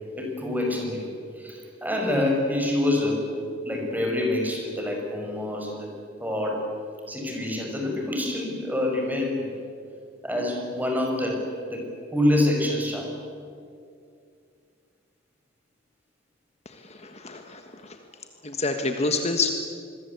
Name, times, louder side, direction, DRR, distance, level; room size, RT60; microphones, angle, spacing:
voice 1, 0.1-1.1 1.4-3.4 3.6-5.9 6.2-6.7 7.1-9.5 10.2-13.1, left 1 dB, 10° right, 1 dB, 5.5 m, -26 dB
voice 2, 16.6-18.0 18.4-19.5, left 3 dB, 35° left, 6 dB, 1.5 m, -28 dB
27.0 x 22.0 x 8.2 m, 2.3 s
head